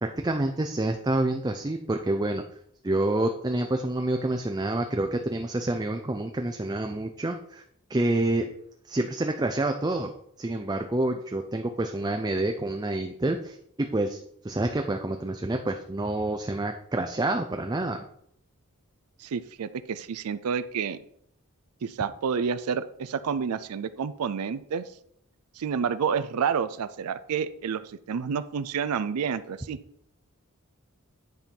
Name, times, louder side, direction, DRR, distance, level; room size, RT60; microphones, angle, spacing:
voice 1, 0.0-2.4 2.8-7.6 7.9-8.5 8.8-10.1 10.4-18.0, right 2 dB, 20° right, 4 dB, 0.5 m, -28 dB
voice 2, 19.2-21.0 21.8-24.9 25.5-29.8, right 6 dB, 85° right, 12 dB, 0.4 m, -29 dB
9.8 x 4.5 x 5.3 m, 0.70 s
head